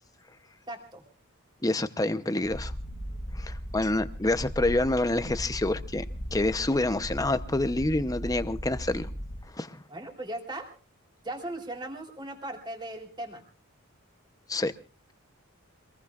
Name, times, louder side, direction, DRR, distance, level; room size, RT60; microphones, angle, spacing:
voice 1, 0.7-1.0 9.9-10.7 11.2-13.4, right 1 dB, 20° right, 3.3 m, -38 dB
voice 2, 1.6-2.7 3.3-6.0 6.3-9.1 9.5-9.8 14.5-14.7, left 2 dB, 15° left, 0.8 m, -27 dB
Purr, 2.4-9.4, equal, 55° left, 2.2 m, -37 dB
25.5 x 20.5 x 2.5 m
head